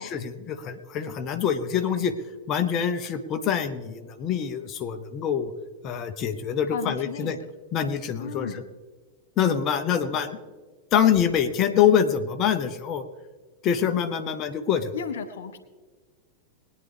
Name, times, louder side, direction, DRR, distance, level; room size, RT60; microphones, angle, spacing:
voice 1, 0.0-2.1 2.5-5.5 5.8-7.4 7.7-8.5 9.4-10.4 10.9-13.0 13.6-14.9, left 8 dB, 35° left, 7 dB, 0.9 m, -25 dB
voice 2, 6.7-7.4 8.2-8.6 14.9-15.6, left 6 dB, 60° left, 9 dB, 0.8 m, -34 dB
21.0 x 9.7 x 3.5 m, 1.4 s
figure-of-eight pair, 90°, 0 cm